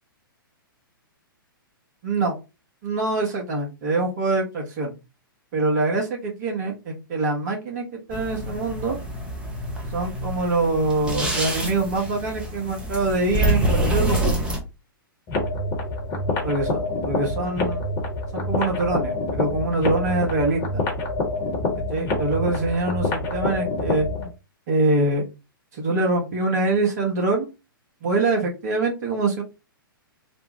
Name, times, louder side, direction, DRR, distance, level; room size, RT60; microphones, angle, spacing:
voice 1, 2.0-2.3 2.8-4.9 5.5-9.0 9.9-14.4 16.4-16.8 17.1-17.8 18.3-20.8 21.9-24.1 24.7-25.2 25.7-27.5 28.0-29.4, right 2 dB, 50° right, 0 dB, 1.5 m, -24 dB
sound 1, 8.1-14.6, right 1 dB, 10° right, 0.9 m, -26 dB
sound 2, 15.3-24.3, left 2 dB, 25° left, 1.3 m, -26 dB
3.3 x 2.4 x 3.3 m, 0.28 s
figure-of-eight pair, 110°, 12 cm